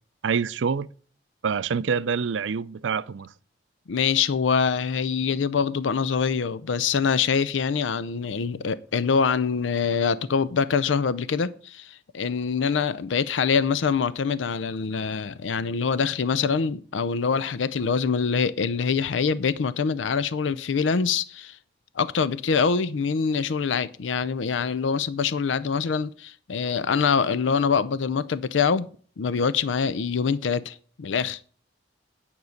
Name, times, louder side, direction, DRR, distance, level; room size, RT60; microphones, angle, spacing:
voice 1, 0.2-0.9 1.4-3.3, right 6 dB, 90° right, 0.5 m, -26 dB
voice 2, 3.9-21.6 22.0-28.9 29.2-31.4, left 6 dB, 90° left, 0.5 m, -24 dB
9.5 x 5.4 x 6.4 m
head